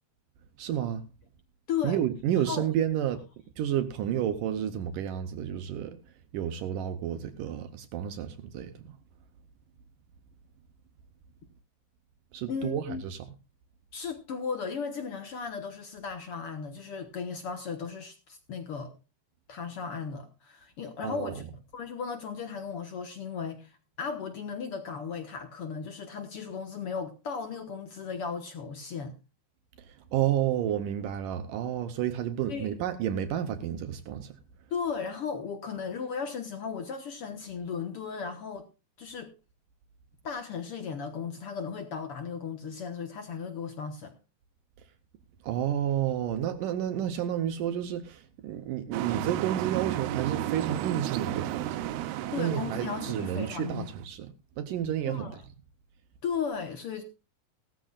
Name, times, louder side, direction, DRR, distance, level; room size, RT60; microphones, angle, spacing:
voice 1, 0.6-1.0 1.8-3.2 3.6-6.0 6.3-8.7 12.3-13.3 21.0-21.3 30.1-34.3 45.4-52.0 52.4-55.3, right 10 dB, 70° right, 2.2 m, -30 dB
voice 2, 1.7-2.0 2.4-2.7 12.5-13.0 13.9-18.9 19.5-21.4 21.7-29.1 32.5-32.7 34.7-38.7 39.0-39.3 40.2-44.1 52.3-53.9 55.0-55.4 56.2-57.0, left 6 dB, 70° left, 1.3 m, -36 dB
sound 1, 48.9-54.0, right 14 dB, 90° right, 2.7 m, -33 dB
17.5 x 13.5 x 2.4 m
omnidirectional pair, 4.3 m